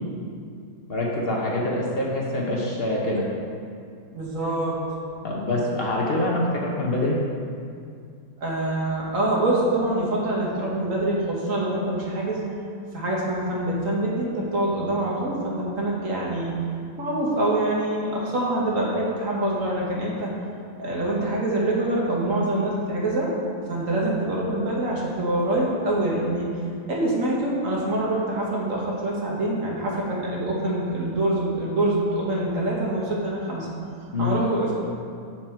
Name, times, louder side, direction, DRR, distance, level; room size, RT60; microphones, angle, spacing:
voice 1, 0.9-3.3 5.2-7.2 34.1-34.5, left 1 dB, 50° left, -3 dB, 0.9 m, -25 dB
voice 2, 4.1-4.8 8.4-12.4 12.9-16.5 17.0-20.3 20.8-23.3 23.7-26.5 26.9-33.7 34.2-34.8, right 1 dB, 70° right, -4 dB, 1.6 m, -25 dB
7.3 x 4.5 x 4.4 m, 2.3 s
omnidirectional pair, 1.4 m